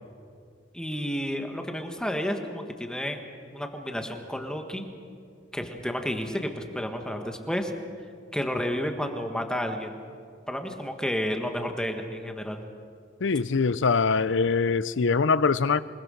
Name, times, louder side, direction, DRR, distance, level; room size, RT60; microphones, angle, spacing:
voice 1, 0.7-3.2 3.5-4.9 5.5-7.7 8.3-10.0 10.5-12.6, equal, 5° left, 4 dB, 1.6 m, -31 dB
voice 2, 13.2-15.8, left 4 dB, 70° left, 16 dB, 0.6 m, -23 dB
27.0 x 19.5 x 6.5 m, 2.2 s
head